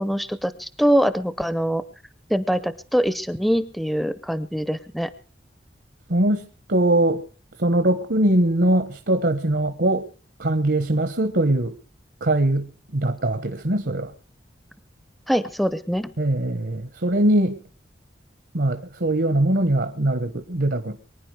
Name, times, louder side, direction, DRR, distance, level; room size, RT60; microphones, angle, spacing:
voice 1, 0.0-1.8 2.3-5.1 15.3-16.1, equal, ahead, 0.6 m, -23 dB
voice 2, 6.1-6.4 6.7-7.2 7.6-10.0 10.4-11.7 12.2-14.1 16.2-17.6 18.5-21.0, right 1 dB, 70° right, 1.3 m, -21 dB
24.0 x 10.0 x 4.9 m
head